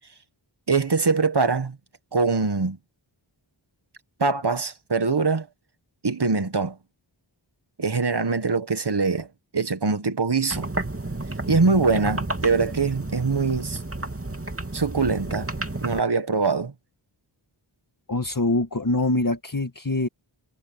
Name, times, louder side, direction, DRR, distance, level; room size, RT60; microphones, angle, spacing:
voice 1, 0.7-1.8 2.1-2.8 4.2-5.5 6.0-6.8 7.8-9.3 9.5-10.7 11.5-13.8 14.7-15.5 15.8-16.7, right 4 dB, 55° right, 1.7 m, -23 dB
sound 1, 10.5-16.0, right 2 dB, 30° right, 2.8 m, -31 dB
voice 2, 18.1-20.1, left 2 dB, 40° left, 1.9 m, -24 dB
wide cardioid pair, 50°, 48 cm